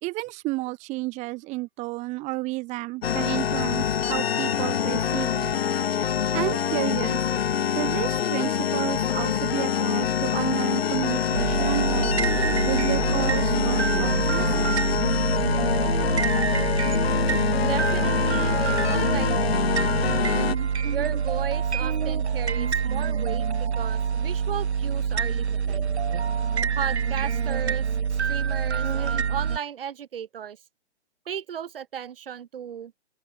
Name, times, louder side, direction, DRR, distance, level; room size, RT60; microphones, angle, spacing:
voice 1, 0.0-5.6 6.3-7.3 7.8-12.1 12.6-14.6, right 21 dB, 20° right, 5.1 m, -31 dB
sound 1, 3.0-20.5, left 8 dB, 60° left, 1.5 m, -25 dB
sound 2, 11.3-29.6, right 6 dB, 75° right, 3.8 m, -26 dB
voice 2, 17.6-20.3 20.9-25.8 26.8-30.6 31.3-32.9, right 9 dB, 55° right, 5.2 m, -36 dB
open air
hypercardioid pair, 155°, 34 cm